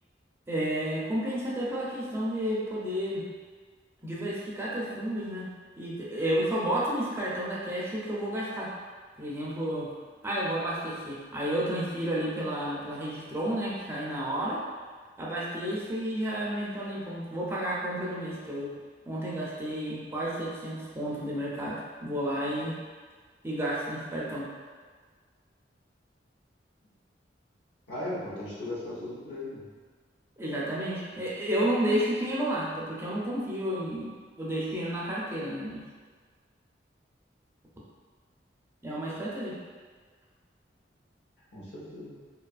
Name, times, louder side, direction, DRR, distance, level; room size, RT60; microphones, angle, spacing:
voice 1, 0.5-3.3 4.0-5.5 5.8-8.7 9.2-9.9 10.2-14.6 15.2-18.7 19.1-22.8 23.4-24.5 30.4-34.1 34.4-35.8 38.8-39.6, right 1 dB, 15° right, -6 dB, 0.4 m, -31 dB
voice 2, 27.9-29.7 41.5-42.1, left 1 dB, 75° left, -7 dB, 0.8 m, -37 dB
2.7 x 2.4 x 2.3 m, 1.5 s
head